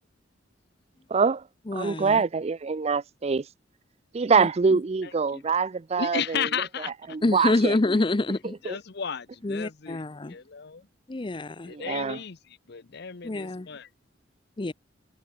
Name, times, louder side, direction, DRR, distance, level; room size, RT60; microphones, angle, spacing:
voice 1, 1.1-1.4 1.7-3.4 4.1-6.4 7.1-7.7 8.7-8.8 11.7-12.2, right 5 dB, 35° right, 0.4 m, -24 dB
voice 2, 1.7-2.2 4.4-4.5 7.2-8.5 9.4-10.4 11.1-11.7 13.2-13.7 14.6-14.7, left 2 dB, 25° left, 0.6 m, -26 dB
voice 3, 5.0-5.4 6.0-7.2 8.6-10.9 11.6-13.9, left 7 dB, 60° left, 0.8 m, -34 dB
head